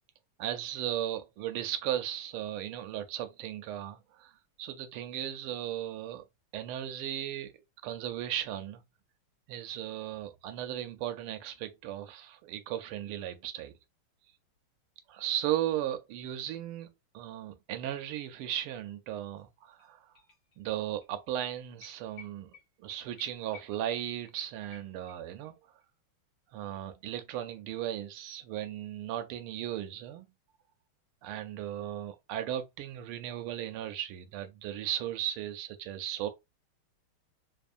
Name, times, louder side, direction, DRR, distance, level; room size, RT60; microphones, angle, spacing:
voice 1, 0.4-4.3 4.6-6.3 6.5-7.5 7.8-8.8 9.5-13.7 15.1-16.9 17.1-20.1 20.6-25.5 26.5-30.3 31.2-36.3, right 11 dB, 80° right, 1.5 m, -36 dB
sound 1, 19.4-19.5 19.7-21.1 21.4-21.5 21.8-25.5 25.8-25.9, left 5 dB, 50° left, 2.0 m, -56 dB
4.3 x 2.9 x 2.5 m
omnidirectional pair, 2.4 m